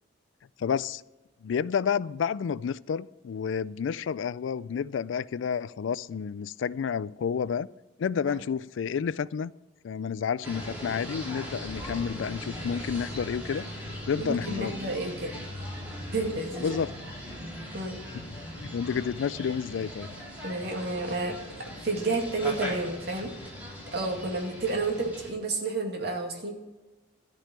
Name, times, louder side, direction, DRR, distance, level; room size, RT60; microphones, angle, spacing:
voice 1, 0.6-1.0 1.4-7.7 8.0-9.5 9.8-13.7 14.1-14.8 16.6-16.9 18.1-18.3 18.6-20.1, left 7 dB, 75° left, 0.3 m, -30 dB
sound 1, 10.4-25.3, equal, 10° right, 3.7 m, -39 dB
voice 2, 14.2-15.3 16.1-16.7 17.7-18.0 20.4-23.3 23.9-26.5, right 3 dB, 60° right, 2.3 m, -31 dB
13.0 x 5.5 x 8.9 m
head